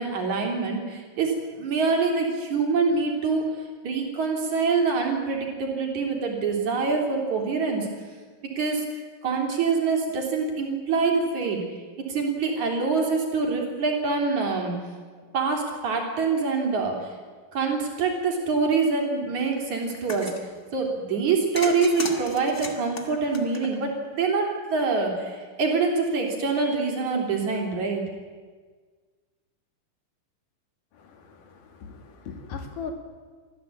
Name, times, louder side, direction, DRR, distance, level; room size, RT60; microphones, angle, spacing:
voice 1, 0.0-3.4 3.8-7.9 8.6-8.8 9.2-11.6 12.1-14.7 15.3-17.1 17.5-20.3 20.7-28.0, right 4 dB, 55° right, 1 dB, 4.7 m, -25 dB
sound 1, 19.9-20.4 21.6-24.1, left 3 dB, 25° left, 1.8 m, -34 dB
voice 2, 31.0-32.9, left 6 dB, 70° left, 6 dB, 3.5 m, -39 dB
25.0 x 15.0 x 8.6 m, 1.5 s
omnidirectional pair, 4.0 m